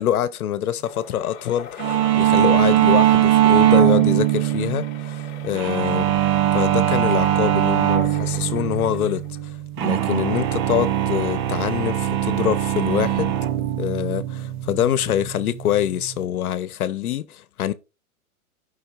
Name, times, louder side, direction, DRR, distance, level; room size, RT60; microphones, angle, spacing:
voice 1, 0.0-6.1 6.5-13.4 13.8-17.7, left 10 dB, 75° left, 1.0 m, -25 dB
sound 1, 0.8-9.6, left 8 dB, 25° left, 1.5 m, -41 dB
sound 2, 1.8-16.3, right 12 dB, 35° right, 0.7 m, -21 dB
15.0 x 5.6 x 2.5 m
hypercardioid pair, 135°, 44 cm